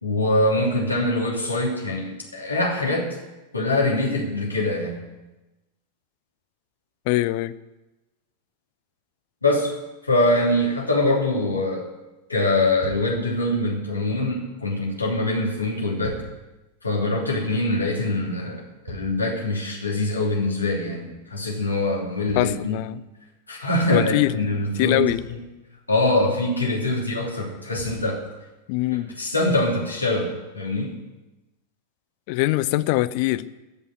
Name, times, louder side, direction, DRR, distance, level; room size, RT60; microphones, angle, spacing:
voice 1, 0.0-3.1 3.5-5.0 9.4-9.7 10.0-11.8 12.3-16.2 16.8-22.8 23.5-25.4 25.9-28.2 29.2-31.0, left 1 dB, 80° left, 2.8 m, -23 dB
voice 2, 7.1-7.5 22.4-23.0 23.9-24.3 24.8-25.2 28.7-29.1 32.3-33.6, left 18 dB, 45° left, 0.5 m, -23 dB
sound 1, 12.8-13.3 15.7-16.5 18.4-19.5 22.2-23.2 24.4-24.5 25.0-25.5 26.9-27.0 27.7-28.2 29.0-29.1, right 1 dB, 70° right, 4.5 m, -40 dB
15.0 x 5.5 x 8.9 m
figure-of-eight pair, 90°, 0 cm